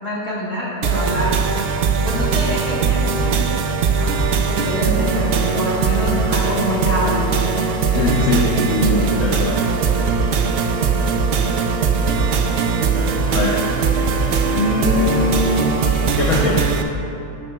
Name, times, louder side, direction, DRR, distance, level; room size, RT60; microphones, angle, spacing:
voice 1, 0.0-1.4 2.0-3.4 4.0-4.1 4.5-7.3, equal, 35° left, -8 dB, 1.6 m, -25 dB
sound 1, 0.8-16.8, right 5 dB, 75° right, 0.5 m, -19 dB
voice 2, 7.9-9.5 13.3-13.6 14.5-15.7 16.2-16.7, left 3 dB, 60° left, -4 dB, 1.1 m, -21 dB
11.5 x 9.1 x 2.3 m, 2.9 s
omnidirectional pair, 1.7 m